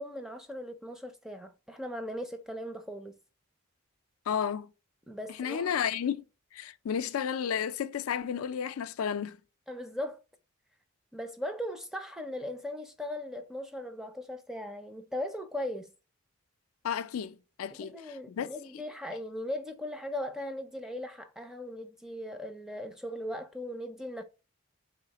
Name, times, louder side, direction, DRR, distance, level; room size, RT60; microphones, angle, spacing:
voice 1, 0.0-3.2 5.1-5.7 9.7-10.2 11.1-15.9 17.8-24.2, left 1 dB, ahead, 0.4 m, -38 dB
voice 2, 4.3-4.7 5.4-6.2 6.5-9.4 16.8-18.5, left 8 dB, 85° left, 0.4 m, -32 dB
4.1 x 3.1 x 2.8 m
head